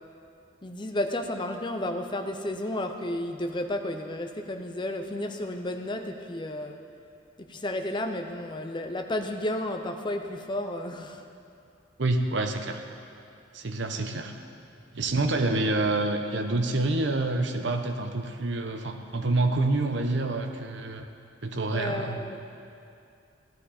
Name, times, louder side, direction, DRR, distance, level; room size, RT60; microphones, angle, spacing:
voice 1, 0.6-6.8 7.4-11.3 21.7-22.4, left 1 dB, 25° left, 5 dB, 0.6 m, -32 dB
voice 2, 12.0-12.8 13.5-14.3 14.9-21.1 21.4-22.2, right 2 dB, 60° right, 5 dB, 0.9 m, -27 dB
15.5 x 12.5 x 4.3 m, 2.5 s
head